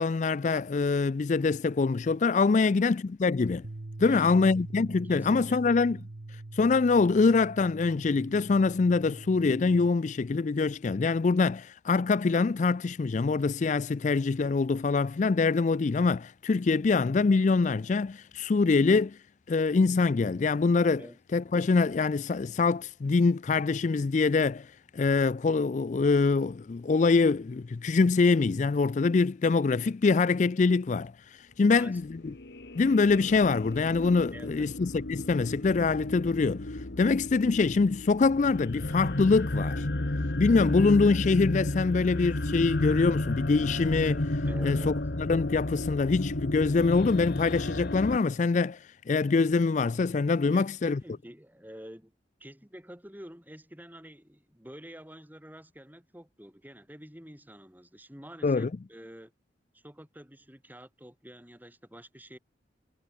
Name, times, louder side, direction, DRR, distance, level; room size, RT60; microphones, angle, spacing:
voice 1, 0.0-3.6 4.0-6.0 6.5-19.2 19.5-21.0 21.3-32.3 32.8-39.9 40.4-44.9 45.2-51.0 58.4-58.7, left 4 dB, 40° left, 0.4 m, -24 dB
sound 1, 3.6-9.9, right 2 dB, 60° right, 1.0 m, -43 dB
voice 2, 4.0-4.6 5.0-5.6 20.9-21.2 31.6-32.0 34.3-34.7 44.4-45.0 50.4-52.1 52.4-59.3 59.7-62.4, equal, 10° right, 3.8 m, -48 dB
sound 2, 32.0-48.2, left 1 dB, 55° left, 1.4 m, -33 dB
head